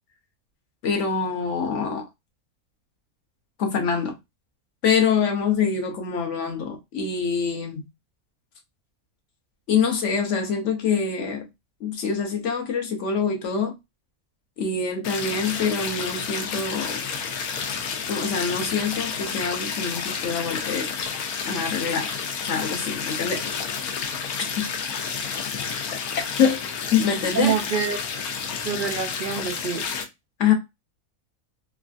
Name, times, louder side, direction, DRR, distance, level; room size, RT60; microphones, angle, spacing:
voice 1, 0.8-2.1 3.6-4.1 4.8-7.9 9.7-11.4 11.8-13.8 14.6-17.0 18.1-20.9 21.4-22.1 22.4-23.5 24.5-24.7 25.9-26.0 26.4-26.6 26.9-27.5 30.4-30.5, left 6 dB, 65° left, 0.9 m, -25 dB
sound 1, 15.0-30.0, left 6 dB, 85° left, 1.1 m, -30 dB
voice 2, 27.3-28.0 28.6-29.9, right 7 dB, 75° right, 0.4 m, -26 dB
3.1 x 2.4 x 2.4 m
omnidirectional pair, 1.5 m